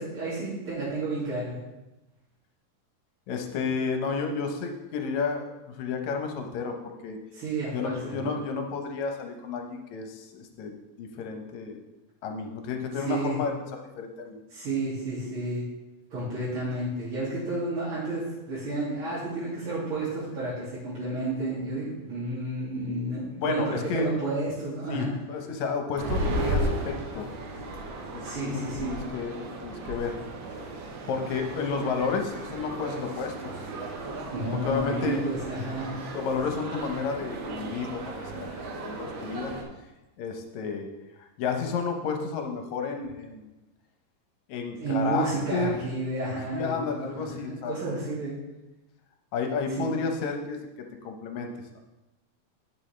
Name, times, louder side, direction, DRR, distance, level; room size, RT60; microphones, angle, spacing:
voice 1, 0.0-1.6 7.3-8.3 12.9-13.4 14.5-15.6 16.1-25.1 28.2-29.0 34.3-35.9 44.8-48.3 49.8-49.9, right 2 dB, 45° right, -10 dB, 2.9 m, -31 dB
voice 2, 3.3-5.5 5.8-7.2 7.7-11.8 12.2-13.5 13.8-14.4 23.4-24.1 24.9-27.3 28.1-30.2 31.1-33.5 34.6-35.5 36.1-39.5 40.2-40.9 41.4-43.5 44.5-45.7 46.5-47.7 49.3-51.8, left 5 dB, 75° left, 4 dB, 2.2 m, -31 dB
sound 1, 26.0-39.6, right 1 dB, 70° right, 1.2 m, -35 dB
11.0 x 6.2 x 3.3 m, 1.0 s
omnidirectional pair, 3.4 m